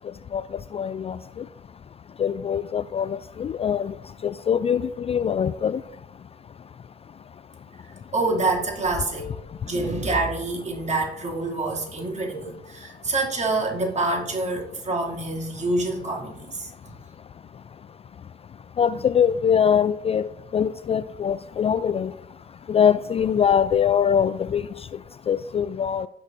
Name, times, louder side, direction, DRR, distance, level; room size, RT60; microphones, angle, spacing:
voice 1, 0.7-1.2 2.2-3.9 4.2-5.8 18.8-20.3 20.5-22.1 22.7-24.6 25.3-26.1, left 8 dB, 30° left, 14 dB, 0.4 m, -22 dB
voice 2, 8.1-9.3 9.6-16.7, right 2 dB, 35° right, 0 dB, 2.6 m, -26 dB
16.0 x 6.4 x 2.6 m, 0.84 s
hypercardioid pair, 55°, 20 cm